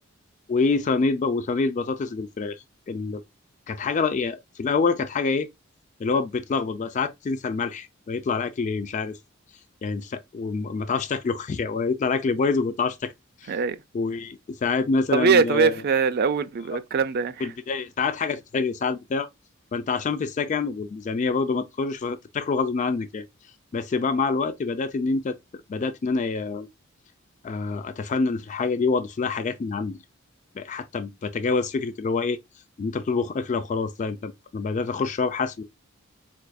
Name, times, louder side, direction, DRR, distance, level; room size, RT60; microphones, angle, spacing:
voice 1, 0.5-2.6 2.9-3.2 3.7-5.5 6.0-9.2 9.8-13.1 13.4-13.6 13.9-15.7 17.4-19.3 19.7-23.3 23.7-25.4 25.7-26.7 27.4-30.0 30.6-32.4 32.8-35.6, left 4 dB, 35° left, 0.3 m, -26 dB
voice 2, 15.1-17.5, right 5 dB, 50° right, 0.4 m, -22 dB
4.5 x 2.5 x 2.2 m
head